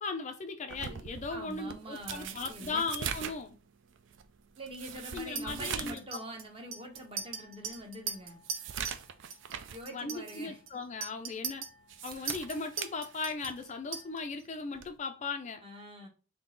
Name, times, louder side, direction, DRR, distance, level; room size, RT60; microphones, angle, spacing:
voice 1, 0.0-3.6 5.1-6.0 9.9-11.6 12.0-15.6, left 4 dB, 35° left, 0.4 m, -37 dB
sound 1, 0.7-6.1 6.4-6.5 7.1-7.2 7.6-9.9 10.2-10.5 11.7-13.7 14.7-15.0, right 8 dB, 65° right, 0.4 m, -42 dB
voice 2, 1.3-2.8 4.6-8.4 9.7-10.6 15.6-16.1, right 1 dB, 25° right, 0.9 m, -44 dB
Chink clink, 5.4-9.0 9.3-9.6 9.9-14.4, right 5 dB, 85° right, 0.8 m, -41 dB
3.7 x 2.8 x 3.8 m
head